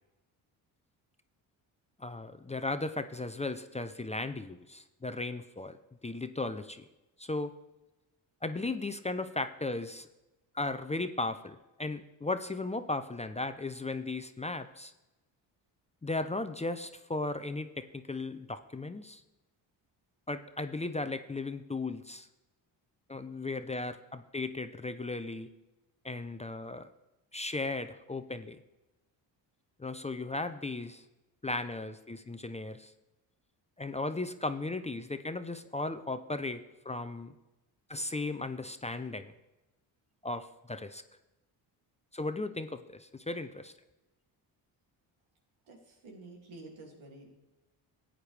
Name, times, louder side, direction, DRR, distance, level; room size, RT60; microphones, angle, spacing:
voice 1, 2.0-5.8 6.0-6.9 7.2-7.5 8.4-10.1 10.5-14.9 16.0-19.2 20.3-22.3 23.1-25.5 26.0-26.9 27.3-28.6 29.8-31.0 31.4-32.9 33.8-37.3 37.9-39.3 40.2-41.0 42.1-43.7, left 2 dB, 15° left, 10 dB, 0.6 m, -36 dB
voice 2, 45.6-47.3, right 2 dB, 85° right, 0 dB, 2.6 m, -50 dB
14.5 x 8.9 x 3.4 m, 1.0 s
supercardioid pair, 65°, 46 cm